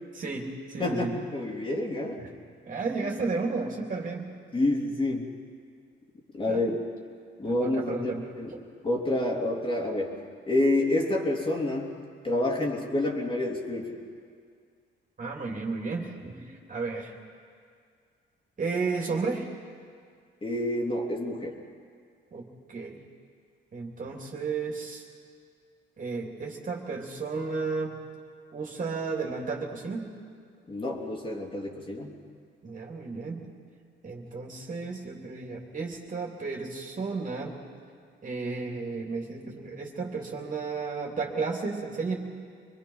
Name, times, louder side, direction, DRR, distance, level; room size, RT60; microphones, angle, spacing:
voice 1, 0.2-1.1 2.2-2.3 2.6-4.3 6.5-6.8 7.4-8.6 15.2-17.2 18.6-19.5 22.3-23.0 23.7-25.0 26.0-28.0 28.5-30.1 32.6-33.4 34.0-37.6 38.2-42.1, right 4 dB, 40° right, 0 dB, 3.2 m, -33 dB
voice 2, 0.8-2.2 4.5-5.3 6.3-6.8 7.4-8.5 8.8-10.1 10.5-11.9 12.2-14.0 20.4-21.5 30.7-32.1, left 1 dB, 25° left, -1 dB, 3.2 m, -28 dB
25.0 x 22.0 x 5.8 m, 2.2 s
cardioid pair, 90°, 20 cm